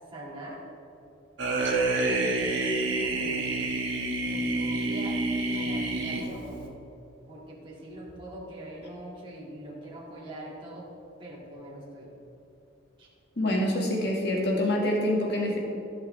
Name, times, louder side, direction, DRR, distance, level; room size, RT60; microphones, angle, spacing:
voice 1, 0.1-0.6 2.0-3.7 4.2-5.2 5.5-6.8 7.3-10.9 11.2-12.2 13.0-13.1, right 1 dB, 25° right, -5 dB, 2.0 m, -42 dB
sound 1, 1.4-6.7, right 2 dB, 70° right, 1.3 m, -28 dB
voice 2, 13.4-15.6, left 1 dB, 55° left, -1 dB, 1.6 m, -26 dB
14.5 x 6.3 x 3.2 m, 2.9 s
head